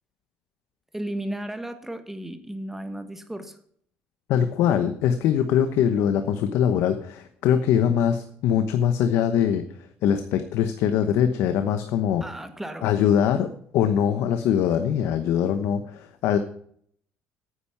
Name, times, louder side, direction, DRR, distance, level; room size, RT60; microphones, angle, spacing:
voice 1, 0.9-3.6 12.2-12.9, right 1 dB, 5° right, 8 dB, 1.4 m, -34 dB
voice 2, 4.3-9.6 10.0-12.2 12.8-16.4, left 9 dB, 75° left, 9 dB, 1.0 m, -22 dB
9.6 x 8.7 x 5.8 m, 0.62 s
cardioid pair, 125°, 5 cm